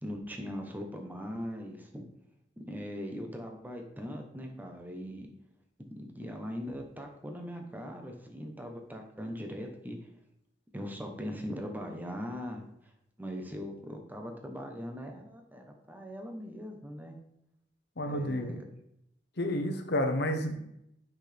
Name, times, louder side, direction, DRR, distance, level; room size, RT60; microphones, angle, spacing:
voice 1, 0.0-2.0 2.7-5.3 5.9-10.0 10.7-12.7 13.2-17.2 18.1-18.6, equal, 10° right, 3 dB, 1.0 m, -40 dB
voice 2, 18.0-18.6 19.4-20.5, left 1 dB, 65° left, 5 dB, 1.0 m, -30 dB
8.0 x 6.0 x 3.4 m, 0.79 s
head